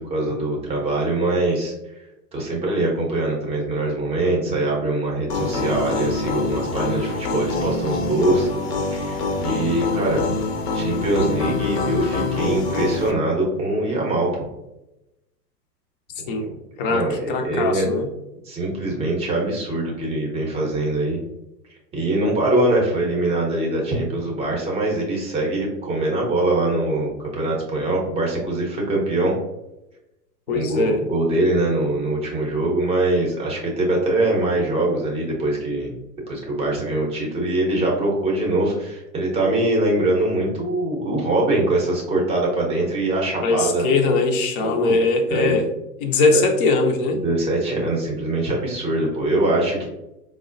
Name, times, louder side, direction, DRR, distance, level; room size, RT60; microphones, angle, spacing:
voice 1, 0.0-1.7 2.3-8.5 8.9-10.2 10.7-14.5 16.3-16.5 16.9-17.9 18.4-21.2 21.9-29.3 30.5-36.0 36.3-43.9 44.6-45.0 45.3-45.6 46.3-46.5 47.1-49.9, right 2 dB, 15° right, -2 dB, 0.6 m, -23 dB
sound 1, 5.3-13.1, left 3 dB, 75° left, 0.7 m, -25 dB
voice 2, 16.8-18.1 30.5-31.0 43.4-45.7 46.0-47.2, left 3 dB, 35° left, 4 dB, 0.5 m, -21 dB
4.7 x 2.0 x 2.5 m, 0.94 s
hypercardioid pair, 110°, 48 cm